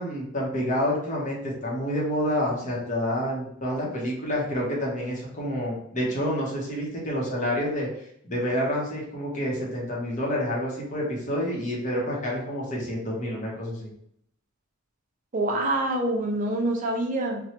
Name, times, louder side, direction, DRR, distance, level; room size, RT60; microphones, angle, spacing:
voice 1, 0.0-7.9 8.2-13.9, equal, 35° left, -3 dB, 0.8 m, -28 dB
voice 2, 15.3-17.4, right 1 dB, 40° right, 1 dB, 0.5 m, -26 dB
3.0 x 2.2 x 2.9 m, 0.70 s
head